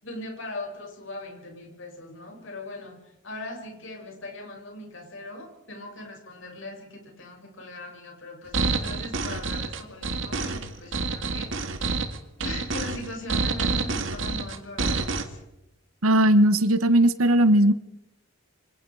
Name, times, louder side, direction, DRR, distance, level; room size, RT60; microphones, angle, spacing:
voice 1, 0.0-3.0 3.2-12.0 12.4-15.4, left 2 dB, 65° left, 1 dB, 7.1 m, -40 dB
sound 1, 8.5-15.2, right 3 dB, 65° right, 2.1 m, -28 dB
voice 2, 16.0-17.7, right 1 dB, 90° right, 12 dB, 1.5 m, -18 dB
28.0 x 25.0 x 5.0 m, 0.87 s
head